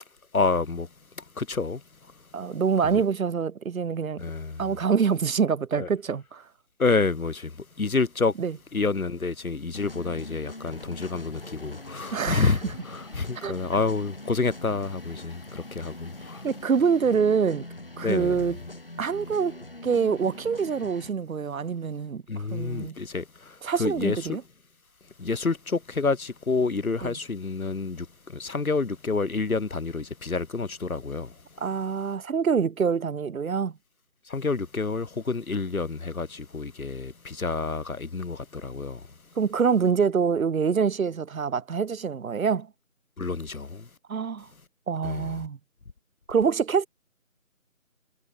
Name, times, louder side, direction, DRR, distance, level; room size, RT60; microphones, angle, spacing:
voice 1, 0.3-0.9 1.4-1.8 2.8-3.0 4.2-4.6 5.8-5.9 6.8-8.3 8.7-16.4 18.0-18.4 22.3-24.4 25.2-31.3 34.3-39.1 43.2-43.9 45.0-45.3, left 4 dB, 75° left, 1.1 m, -28 dB
voice 2, 2.3-4.2 4.6-6.4 8.4-8.6 12.1-12.5 13.4-13.6 16.4-17.7 18.0-18.6 19.0-22.2 22.5-23.0 23.6-24.4 27.0-27.1 31.6-33.7 39.4-42.7 44.1-44.5 44.9-45.6 46.3-46.9, right 6 dB, 75° right, 0.6 m, -25 dB
sound 1, 9.7-21.1, left 2 dB, 40° left, 2.8 m, -42 dB
figure-of-eight pair, 175°, 42 cm